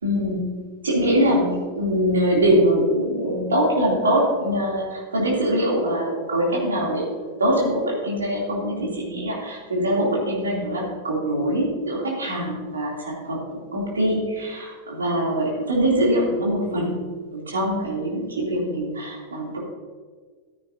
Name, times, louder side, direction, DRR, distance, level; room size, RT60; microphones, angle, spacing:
voice 1, 0.0-13.4 13.7-17.1 17.3-19.6, equal, 70° right, -3 dB, 3.1 m, -23 dB
13.5 x 9.9 x 2.8 m, 1.5 s
figure-of-eight pair, 90°, 0 cm